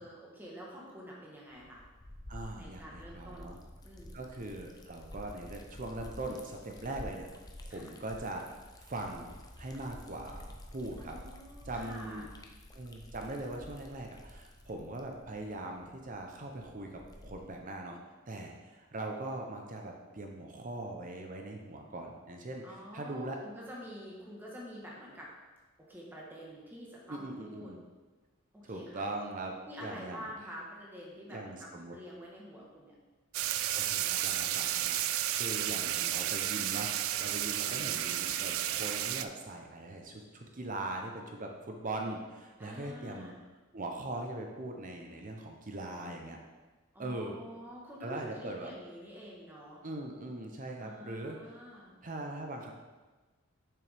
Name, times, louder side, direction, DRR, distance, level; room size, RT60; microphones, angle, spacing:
voice 1, 0.0-1.8 2.6-3.5 3.8-4.2 7.7-7.9 11.0-12.3 22.6-25.3 25.8-27.7 28.5-29.1 29.6-32.9 35.5-36.2 37.5-38.3 42.6-43.3 46.9-49.8 50.8-51.9, equal, 10° right, -4 dB, 1.4 m, -48 dB
Liquid, 1.5-17.6, left 1 dB, 20° left, 0.5 m, -50 dB
voice 2, 2.3-3.6 4.1-7.3 7.6-8.6 8.9-11.2 11.7-12.3 12.7-18.0 18.3-22.6 22.9-23.4 27.1-27.8 28.7-29.5 29.8-30.3 31.3-32.0 33.7-36.9 37.2-43.3 43.7-46.4 47.0-47.4 48.0-48.7 49.8-51.4 52.0-52.7, right 2 dB, 40° right, 2 dB, 0.7 m, -41 dB
sound 1, 33.3-39.3, right 12 dB, 75° right, 0.3 m, -32 dB
6.9 x 5.9 x 3.5 m, 1.2 s
head